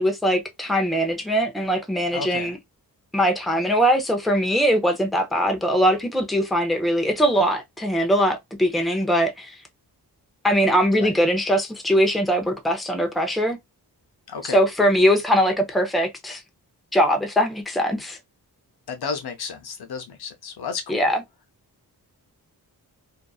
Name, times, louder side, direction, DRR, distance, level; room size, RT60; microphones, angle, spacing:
voice 1, 0.0-2.6 3.1-9.5 10.4-13.6 14.4-16.4 16.9-18.2 20.9-21.2, equal, ahead, 0.6 m, -21 dB
voice 2, 2.1-2.5 10.9-11.1 14.3-14.6 18.9-21.1, left 5 dB, 75° left, 0.7 m, -32 dB
2.6 x 2.5 x 2.3 m
wide cardioid pair, 80°, 39 cm